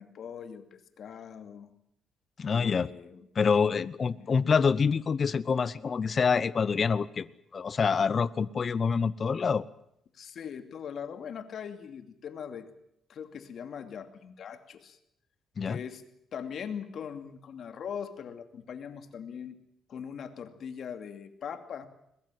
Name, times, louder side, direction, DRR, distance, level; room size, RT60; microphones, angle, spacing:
voice 1, 0.0-1.7 2.5-3.2 4.1-4.5 10.1-12.7 13.1-15.0 15.7-19.6 19.9-21.9, left 7 dB, 60° left, 8 dB, 2.6 m, -41 dB
voice 2, 2.4-2.9 3.3-9.6 15.6-15.8, left 5 dB, 45° left, 17 dB, 0.9 m, -26 dB
21.5 x 21.5 x 7.7 m, 0.75 s
cardioid pair, 90°, 0 cm